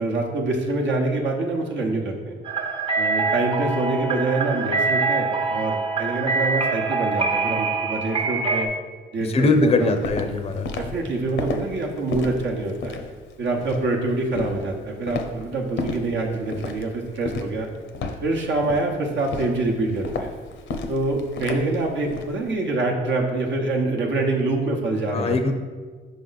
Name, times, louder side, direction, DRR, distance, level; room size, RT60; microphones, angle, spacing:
voice 1, 0.0-2.2 3.0-8.7 9.1-10.0 10.8-13.0 13.4-17.7 18.2-20.3 20.9-25.5, right 2 dB, 65° right, 0 dB, 0.9 m, -25 dB
sound 1, 2.4-8.7, right 4 dB, 25° right, 0.7 m, -24 dB
voice 2, 9.3-10.7 25.1-25.5, left 3 dB, 30° left, 7 dB, 0.5 m, -21 dB
Walk footsteps, 9.5-22.3, left 3 dB, 70° left, 0.7 m, -33 dB
5.2 x 5.1 x 4.0 m, 1.5 s
cardioid pair, 90°, 20 cm